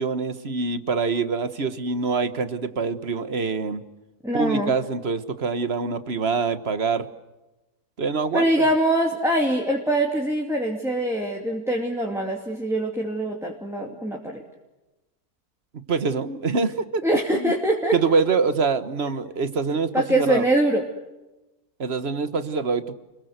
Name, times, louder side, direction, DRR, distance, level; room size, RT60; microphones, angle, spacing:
voice 1, 0.0-3.8 4.3-7.1 8.0-8.7 15.9-17.0 17.3-17.5 17.9-20.4 21.8-22.9, right 4 dB, 45° right, 12 dB, 1.5 m, -25 dB
voice 2, 4.2-4.7 8.3-14.4 17.0-18.0 19.9-20.8, right 1 dB, ahead, 0 dB, 2.6 m, -23 dB
30.0 x 22.5 x 8.1 m, 1.0 s
omnidirectional pair, 1.6 m